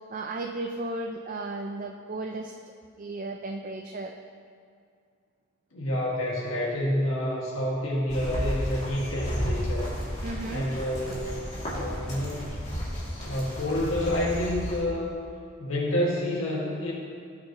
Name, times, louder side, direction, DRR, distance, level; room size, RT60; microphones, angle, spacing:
voice 1, 0.1-2.5 3.0-4.1 10.2-10.7, right 2 dB, 40° right, 3 dB, 0.5 m, -34 dB
voice 2, 5.7-9.9 10.5-11.2 11.7-12.6 13.2-15.1 15.6-16.9, left 1 dB, 80° left, -4 dB, 1.8 m, -28 dB
sound 1, 8.1-14.8, equal, 35° left, 2.4 m, -33 dB
17.0 x 6.8 x 3.0 m, 2.3 s
head